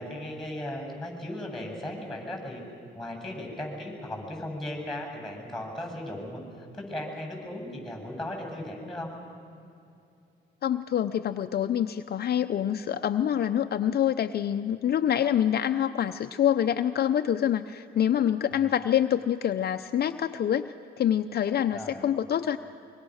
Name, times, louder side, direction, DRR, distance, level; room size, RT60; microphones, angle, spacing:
voice 1, 0.0-2.6 2.9-9.1 18.5-18.7 21.7-22.1, left 1 dB, ahead, 3 dB, 7.9 m, -37 dB
voice 2, 10.6-22.6, left 10 dB, 55° left, 8 dB, 0.6 m, -26 dB
25.0 x 23.5 x 6.5 m, 2.6 s
cardioid pair, 90°, 20 cm